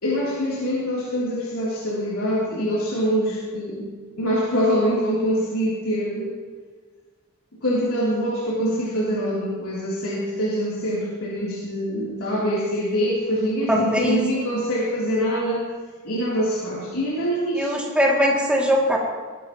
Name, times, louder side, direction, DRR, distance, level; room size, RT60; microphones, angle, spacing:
voice 1, 0.0-3.9 4.2-6.3 7.6-15.6 16.0-17.7, equal, 85° left, -8 dB, 3.3 m, -24 dB
voice 2, 13.7-14.2 17.6-19.0, equal, 5° right, -3 dB, 2.6 m, -20 dB
19.5 x 12.5 x 3.1 m, 1.4 s
head